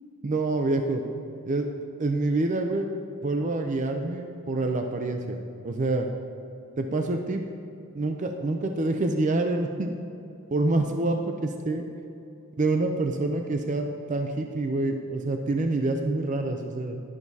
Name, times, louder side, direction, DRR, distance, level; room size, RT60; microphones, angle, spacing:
voice 1, 0.2-1.0 1.5-1.7 2.0-2.9 3.2-6.1 6.8-7.4 7.9-9.9 10.5-11.8 12.6-17.0, right 2 dB, 35° right, 4 dB, 0.5 m, -27 dB
12.0 x 10.5 x 2.8 m, 2.7 s
head